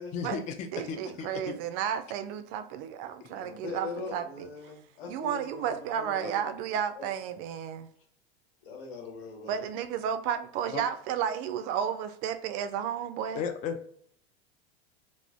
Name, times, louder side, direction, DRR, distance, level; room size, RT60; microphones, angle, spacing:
voice 1, 0.1-1.6 3.2-3.3 10.7-10.8 13.3-13.8, left 6 dB, 25° left, 0.3 m, -35 dB
voice 2, 0.7-4.7 5.1-7.9 9.5-13.4, right 9 dB, 50° right, 0.4 m, -32 dB
voice 3, 3.3-6.5 7.0-7.1 8.6-9.7, left 3 dB, 75° left, 1.0 m, -41 dB
2.4 x 2.1 x 3.4 m
hypercardioid pair, 95°, 30 cm